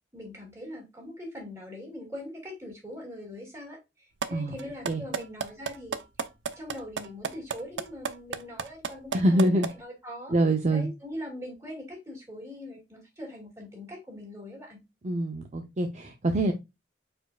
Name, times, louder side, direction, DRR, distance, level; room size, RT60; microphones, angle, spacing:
voice 1, 0.1-6.0 6.6-10.4 10.7-14.8, left 1 dB, 15° right, 2.5 m, -42 dB
sound 1, 4.2-4.3 4.6-9.7, right 6 dB, 85° right, 0.6 m, -31 dB
voice 2, 9.1-9.7 10.3-10.9 15.0-16.5, right 1 dB, 40° right, 0.6 m, -25 dB
5.0 x 4.4 x 2.3 m
head